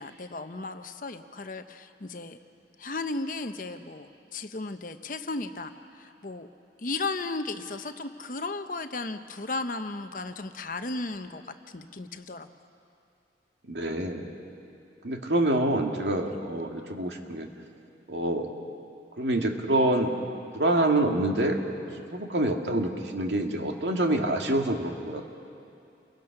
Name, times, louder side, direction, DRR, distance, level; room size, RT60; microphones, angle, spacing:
voice 1, 0.0-2.4 2.8-4.1 4.3-5.7 6.0-6.5 6.8-11.4 11.7-12.5, left 3 dB, 50° left, 8 dB, 0.9 m, -35 dB
voice 2, 13.7-14.2 15.0-17.5 18.1-18.5 19.2-20.2 20.5-21.6 21.9-25.2, right 1 dB, 80° right, 3 dB, 2.1 m, -26 dB
29.5 x 22.0 x 5.9 m, 2.5 s
head